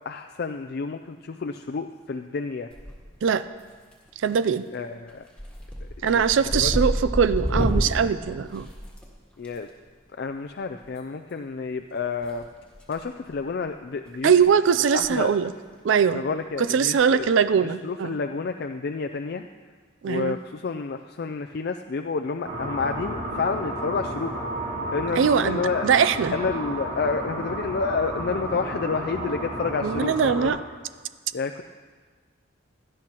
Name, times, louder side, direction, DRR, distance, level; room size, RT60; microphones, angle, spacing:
voice 1, 0.1-2.7 4.7-5.2 6.0-6.3 6.5-6.7 9.4-9.7 10.2-12.4 12.9-14.6 14.9-15.3 16.1-17.3 17.8-19.5 20.0-24.4 24.9-25.9 26.3-30.6 31.3-31.6, left 4 dB, 50° left, 6 dB, 0.4 m, -29 dB
sound 1, 2.7-3.3 3.6-4.1 4.5-4.7 5.1-9.5 10.8-11.0 12.2-13.0 13.3-13.5 14.1-14.2 14.4-14.5 14.9-15.1 15.3-15.4 17.0-17.3, equal, 5° left, 1.7 m, -29 dB
voice 2, 4.2-4.6 6.0-8.7 14.2-15.5 15.8-16.2 16.6-18.2 20.0-20.4 25.2-26.3 29.8-30.6, right 7 dB, 65° right, 13 dB, 0.4 m, -21 dB
sound 2, 22.4-30.5, right 1 dB, 50° right, 2.4 m, -32 dB
16.5 x 11.5 x 2.9 m, 1.5 s
head